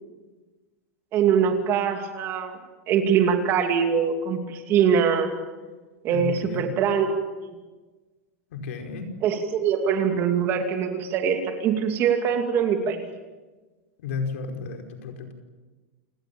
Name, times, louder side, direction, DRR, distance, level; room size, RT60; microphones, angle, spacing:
voice 1, 1.1-2.6 2.9-5.3 6.0-7.1 7.4-7.5 9.2-13.0, right 7 dB, 30° right, 5 dB, 2.7 m, -23 dB
voice 2, 6.1-6.7 8.5-9.1 14.0-15.3, left 4 dB, 80° left, 3 dB, 5.0 m, -33 dB
29.0 x 19.0 x 7.2 m, 1.3 s
supercardioid pair, 160°, 7 cm